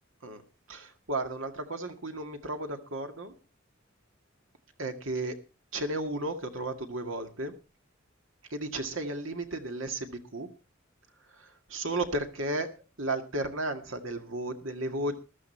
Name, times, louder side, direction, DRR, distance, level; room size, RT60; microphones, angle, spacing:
voice 1, 0.7-3.3 4.8-5.4 5.7-7.5 8.5-10.5 11.4-12.7 13.0-15.2, right 2 dB, 70° right, 6 dB, 2.1 m, -34 dB
14.0 x 12.5 x 4.5 m, 0.32 s
head